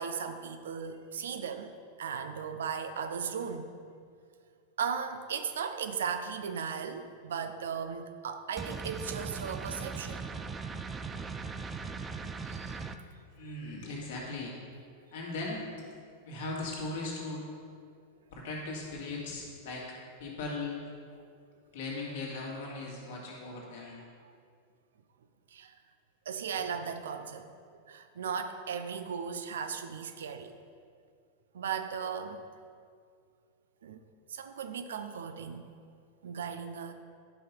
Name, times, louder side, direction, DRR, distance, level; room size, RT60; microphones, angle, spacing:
voice 1, 0.0-1.7 2.0-3.7 4.8-10.3 12.4-12.7 24.2-24.3 25.5-25.7 26.3-27.5 27.9-30.5 31.5-32.4 33.8-34.0 34.3-35.6 36.2-36.9, right 6 dB, 65° right, 8 dB, 0.6 m, -36 dB
sound 1, 8.6-13.0, right 4 dB, 20° right, 0.5 m, -39 dB
voice 2, 13.4-14.5 15.1-15.7 16.2-17.4 18.3-20.9 21.7-24.0, left 3 dB, 55° left, -3 dB, 2.4 m, -38 dB
11.5 x 5.7 x 5.4 m, 2.2 s
figure-of-eight pair, 90°, 0 cm